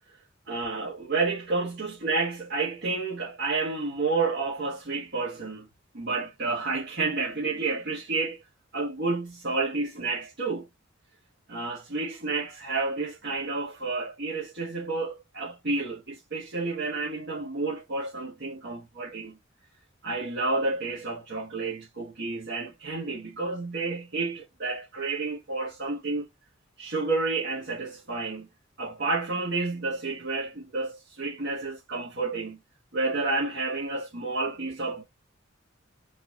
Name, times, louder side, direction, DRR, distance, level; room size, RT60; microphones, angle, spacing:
voice 1, 0.5-5.7 5.9-8.4 8.7-10.7 11.5-19.4 20.0-26.3 26.8-28.5 28.8-32.6 32.9-35.0, right 3 dB, 60° right, 1.3 m, -30 dB
4.0 x 2.5 x 2.9 m
head